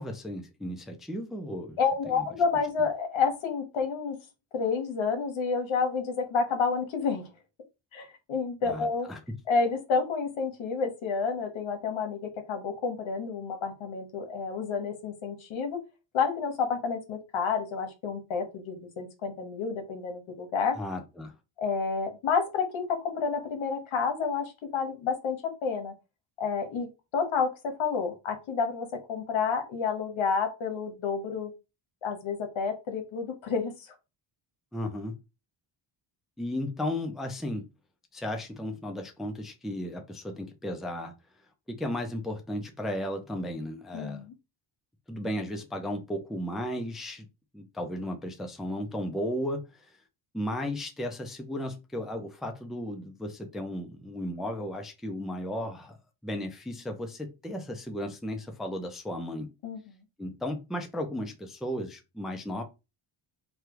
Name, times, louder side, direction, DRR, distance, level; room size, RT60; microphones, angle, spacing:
voice 1, 0.0-1.8 2.1-2.2 8.6-9.2 20.8-21.3 34.7-35.2 36.4-37.6 38.1-41.1 41.7-44.2 45.1-47.3 47.5-49.9 50.3-56.0 56.2-59.5 60.2-62.6, left 1 dB, ahead, 0.4 m, -35 dB
voice 2, 1.8-4.2 4.5-7.3 7.9-9.1 9.5-15.8 16.1-20.8 21.6-25.9 26.4-26.9 27.1-31.5 32.0-33.9 43.9-44.3 59.6-59.8, left 5 dB, 75° left, 1.1 m, -29 dB
3.3 x 2.3 x 2.9 m
cardioid pair, 90°, 48 cm